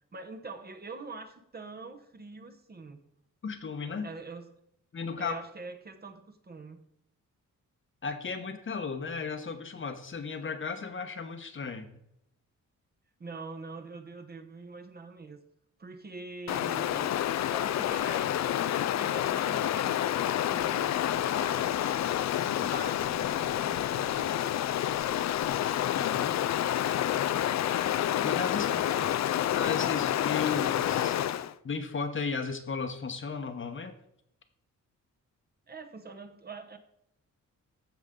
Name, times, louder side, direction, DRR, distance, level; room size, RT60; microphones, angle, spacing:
voice 1, 0.1-3.0 4.0-4.6 5.2-6.8 13.2-15.4 15.8-17.2 17.5-21.8 22.2-24.3 28.6-29.3 35.7-36.8, right 3 dB, 30° right, 7 dB, 0.9 m, -44 dB
voice 2, 3.4-4.1 4.9-5.4 8.0-12.0 26.0-26.3 28.2-28.7 29.5-31.2 31.6-34.0, left 5 dB, 40° left, 7 dB, 1.0 m, -35 dB
Stream, 16.5-31.5, left 11 dB, 60° left, 0.4 m, -28 dB
14.5 x 5.1 x 3.7 m, 0.74 s
cardioid pair, 100°, 32 cm